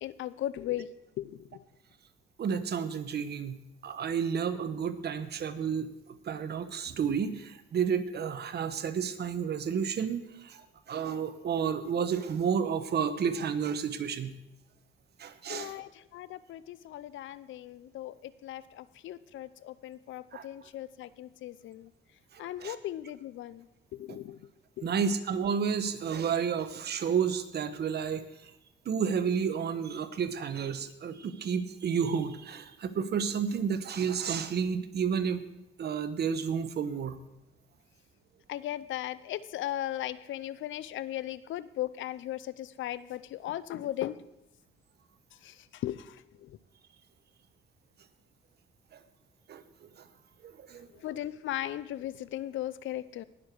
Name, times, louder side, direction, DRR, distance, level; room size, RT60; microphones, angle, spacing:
voice 1, 0.0-0.9 1.2-1.6 15.5-21.9 22.4-23.7 23.9-24.4 24.8-24.9 38.5-44.2 45.4-46.2 46.4-46.5 51.0-53.2, left 13 dB, 75° left, 17 dB, 0.6 m, -37 dB
voice 2, 2.4-5.9 6.3-14.4 15.2-15.8 20.3-20.5 22.3-22.8 24.1-24.2 24.8-28.2 28.8-35.4 35.8-37.2 49.5-49.6 50.0-50.1 50.4-50.9, right 7 dB, 55° right, 11 dB, 1.0 m, -31 dB
19.0 x 6.8 x 4.7 m, 0.87 s
cardioid pair, 90°, 20 cm